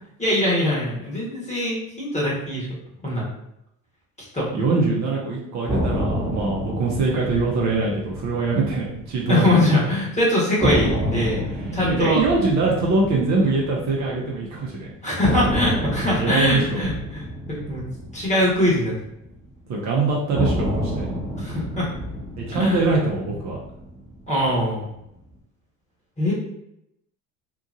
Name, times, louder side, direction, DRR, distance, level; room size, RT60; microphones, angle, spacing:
voice 1, 0.2-2.7 3.0-3.3 4.3-4.5 9.3-11.5 11.7-12.2 15.0-17.8 18.1-18.9 21.4-21.9 22.5-22.9 24.3-24.9 26.2-26.3, left 1 dB, 15° left, -5 dB, 1.4 m, -22 dB
voice 2, 4.5-9.6 10.6-10.7 11.8-14.9 16.2-16.9 19.7-21.1 22.4-23.6, right 3 dB, 40° right, -3 dB, 0.8 m, -23 dB
sound 1, 5.7-9.8 10.0-10.1 10.6-14.7 15.2-19.6 20.3-24.7, equal, 5° right, 1.1 m, -29 dB
2.9 x 2.4 x 2.6 m, 0.82 s
hypercardioid pair, 70°, 40 cm